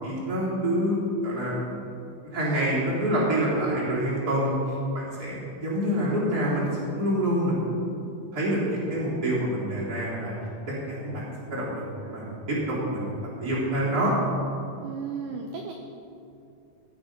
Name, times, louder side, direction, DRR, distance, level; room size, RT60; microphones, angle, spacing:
voice 1, 0.0-1.9 2.3-7.6 8.3-10.3 10.7-11.2 11.5-13.1 13.4-14.1, equal, 25° right, -8 dB, 4.1 m, -27 dB
voice 2, 14.8-15.7, right 6 dB, 75° right, 2 dB, 2.3 m, -34 dB
16.0 x 9.5 x 5.4 m, 2.6 s
omnidirectional pair, 4.3 m